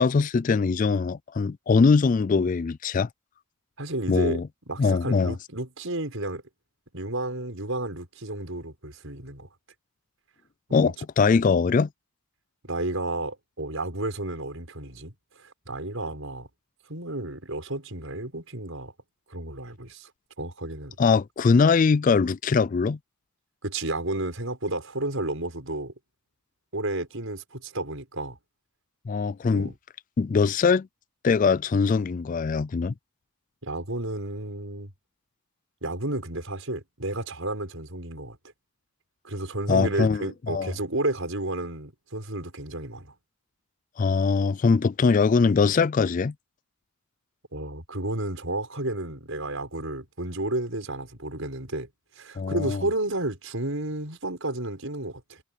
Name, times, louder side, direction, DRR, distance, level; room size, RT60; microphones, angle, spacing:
voice 1, 0.0-3.1 4.1-4.5 4.8-5.3 10.7-11.9 21.0-23.0 29.1-29.7 30.2-30.9 31.2-32.9 39.7-40.7 44.0-46.3 52.4-52.8, left 5 dB, 40° left, 0.3 m, -22 dB
voice 2, 3.8-4.4 4.7-6.4 6.9-9.5 10.8-10.9 12.6-15.1 15.4-16.5 16.9-18.9 19.3-20.1 20.4-21.2 23.6-25.9 26.7-28.4 29.5-29.7 33.6-34.9 35.8-38.4 39.2-43.1 47.5-51.9 52.2-55.4, right 2 dB, 70° right, 6.1 m, -32 dB
head